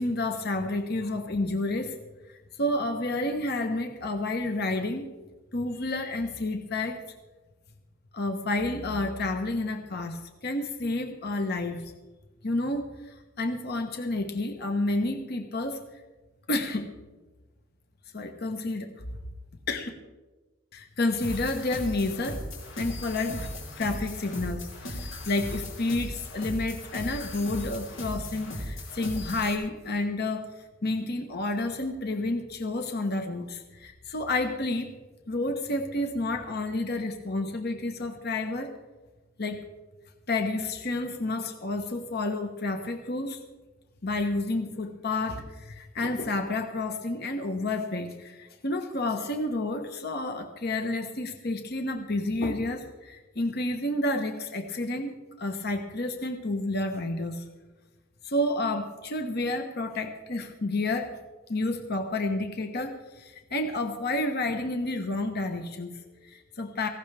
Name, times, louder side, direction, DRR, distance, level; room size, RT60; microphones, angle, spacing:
voice 1, 0.0-2.0 2.3-5.1 5.5-7.0 8.1-11.9 12.4-15.8 16.5-16.9 18.1-18.9 19.7-19.9 20.7-22.4 22.8-30.5 30.8-34.9 35.3-38.7 39.4-39.6 40.3-43.4 44.0-55.1 55.4-57.4 58.2-61.1 61.5-66.9, left 2 dB, 55° left, 5 dB, 1.1 m, -30 dB
sound 1, 21.2-29.6, left 1 dB, 85° left, 3.1 m, -37 dB
18.0 x 16.0 x 3.4 m, 1.2 s
head